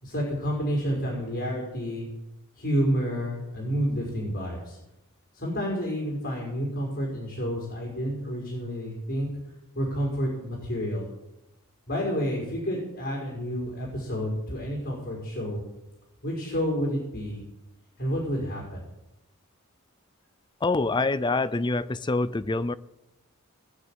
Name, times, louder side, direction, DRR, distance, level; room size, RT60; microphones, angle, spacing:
voice 1, 0.0-2.1 2.6-4.8 5.4-9.3 9.7-11.1 11.9-15.6 16.2-17.4 18.0-18.8, equal, 50° left, 5.1 m, -29 dB
voice 2, 20.6-22.7, left 3 dB, 20° left, 0.5 m, -25 dB
19.5 x 6.7 x 9.1 m
head